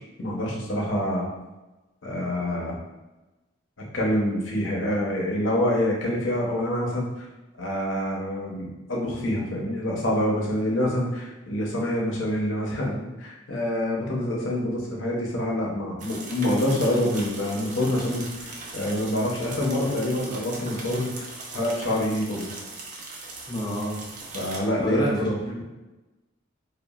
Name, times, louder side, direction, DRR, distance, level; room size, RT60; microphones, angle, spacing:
voice 1, 0.2-1.3 2.0-2.8 3.9-7.3 7.6-21.3 21.5-22.5 24.3-25.6, left 1 dB, 70° left, -3 dB, 0.7 m, -26 dB
sound 1, 16.0-24.6, right 3 dB, 40° right, 0.4 m, -39 dB
voice 2, 23.5-24.0 24.8-25.6, equal, 20° left, -4 dB, 0.4 m, -29 dB
2.9 x 2.2 x 2.3 m, 1.1 s
head